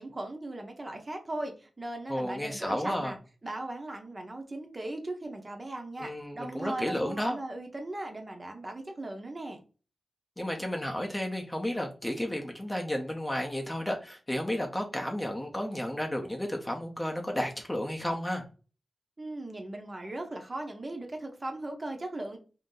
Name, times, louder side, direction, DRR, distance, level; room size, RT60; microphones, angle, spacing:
voice 1, 0.0-3.2 3.4-9.6 19.2-22.4, right 2 dB, 30° right, 4 dB, 0.7 m, -38 dB
voice 2, 2.1-3.1 6.0-7.4 10.4-18.4, left 1 dB, 15° left, 2 dB, 0.6 m, -32 dB
2.7 x 2.5 x 3.7 m, 0.35 s
wide cardioid pair, 90°, 0 cm